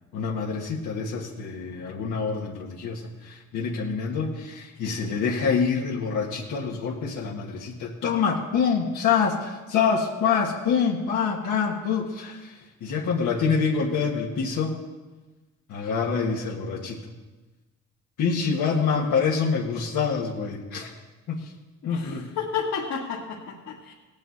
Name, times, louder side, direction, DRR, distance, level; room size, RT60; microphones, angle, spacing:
voice 1, 0.1-12.5 12.8-14.8 15.7-17.0 18.2-20.9 21.3-21.4 21.8-22.3, left 6 dB, 80° left, -3 dB, 1.6 m, -26 dB
voice 2, 21.8-23.9, left 6 dB, 65° left, -5 dB, 1.9 m, -32 dB
17.5 x 8.9 x 4.2 m, 1.2 s
cardioid pair, 90°, 30 cm